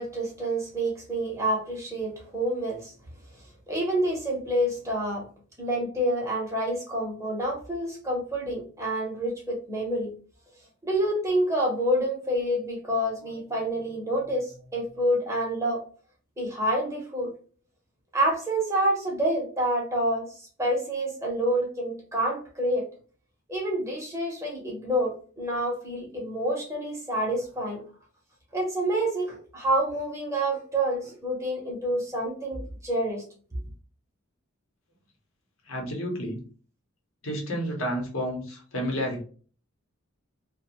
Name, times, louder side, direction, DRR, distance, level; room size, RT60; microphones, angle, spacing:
voice 1, 0.0-2.9 3.7-5.2 5.6-10.1 10.8-15.8 16.4-17.3 18.1-22.8 23.5-27.8 28.5-33.2, right 1 dB, 15° right, -2 dB, 0.8 m, -28 dB
voice 2, 35.7-36.4 37.2-39.2, equal, 70° left, 0 dB, 0.9 m, -30 dB
2.4 x 2.2 x 2.9 m, 0.41 s
head